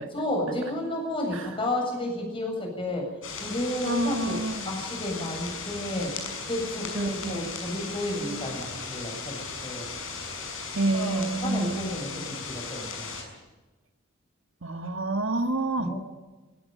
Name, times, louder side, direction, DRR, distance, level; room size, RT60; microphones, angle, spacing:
voice 1, 0.0-3.1 3.3-4.4 4.6-6.1 6.5-9.9 10.9-13.1 15.8-16.0, left 1 dB, 25° left, 1 dB, 7.7 m, -32 dB
sound 1, 3.2-13.2, left 4 dB, 70° left, 6.4 m, -37 dB
voice 2, 3.8-4.7 6.9-7.5 10.7-11.9 14.6-16.0, right 2 dB, 70° right, 7 dB, 1.6 m, -28 dB
21.0 x 18.0 x 9.3 m, 1.2 s
head